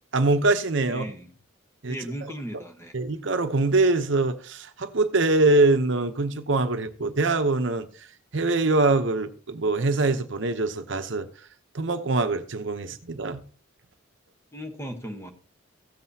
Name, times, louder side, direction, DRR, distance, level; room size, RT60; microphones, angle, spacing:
voice 1, 0.1-1.1 1.8-2.3 2.9-7.9 8.3-11.3 11.7-13.4, right 2 dB, 60° right, 0.8 m, -23 dB
voice 2, 0.9-1.3 1.9-2.9 12.8-12.9 14.5-15.3, equal, 15° left, 1.1 m, -37 dB
15.5 x 7.6 x 2.8 m
head